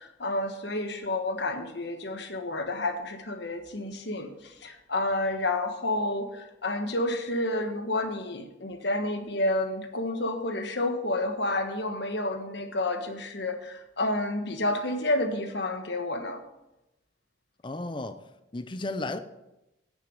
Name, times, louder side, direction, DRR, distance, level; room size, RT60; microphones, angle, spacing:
voice 1, 0.0-16.4, left 2 dB, 65° left, 1.3 m, -30 dB
voice 2, 17.6-18.2 18.5-19.2, left 2 dB, 25° left, 0.5 m, -33 dB
9.2 x 6.9 x 6.5 m
head